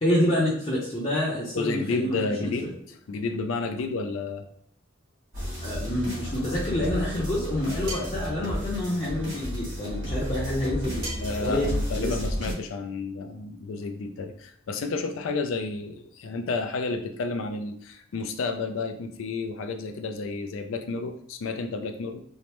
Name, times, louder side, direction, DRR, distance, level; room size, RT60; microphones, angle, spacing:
voice 1, 0.0-2.7 5.6-12.1, left 1 dB, 30° left, -9 dB, 0.6 m, -28 dB
voice 2, 1.5-2.7 3.1-4.5 11.2-22.2, left 3 dB, 90° left, 6 dB, 0.4 m, -31 dB
sound 1, 5.3-12.5, equal, 80° right, 1.4 m, -32 dB
sound 2, 7.9-8.2 11.0-11.4, right 1 dB, 55° right, 1.3 m, -36 dB
3.2 x 2.0 x 2.9 m, 0.68 s
head